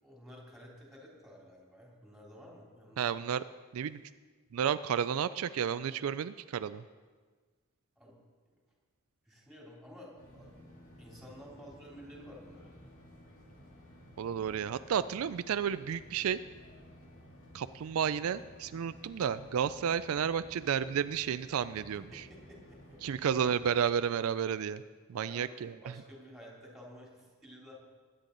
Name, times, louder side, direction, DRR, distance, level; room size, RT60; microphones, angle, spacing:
voice 1, 0.0-3.2 8.0-8.1 9.2-10.7 11.0-12.7 21.9-23.0 25.1-27.8, equal, ahead, -3 dB, 3.2 m, -52 dB
voice 2, 3.0-3.4 3.7-4.0 4.5-6.8 14.2-16.4 17.5-22.2 23.0-24.8 25.1-25.7, right 8 dB, 75° right, 13 dB, 0.4 m, -32 dB
sound 1, 10.2-23.7, equal, 65° left, 2.8 m, -55 dB
21.5 x 9.0 x 3.9 m, 1.5 s
head